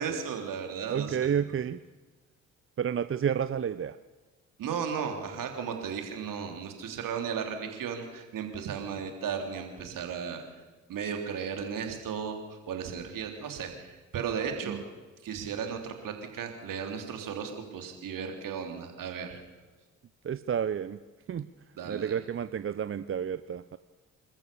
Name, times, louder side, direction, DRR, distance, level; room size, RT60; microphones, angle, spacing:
voice 1, 0.0-1.4 4.6-10.6 10.9-14.8 15.2-19.4 21.8-22.2, right 7 dB, 60° right, 4 dB, 3.4 m, -35 dB
voice 2, 0.9-1.8 2.8-4.0 14.7-14.8 20.2-21.0 21.3-21.5 21.9-23.8, right 8 dB, 35° right, 13 dB, 0.7 m, -30 dB
28.0 x 14.0 x 7.0 m, 1.3 s
hypercardioid pair, 45°, 36 cm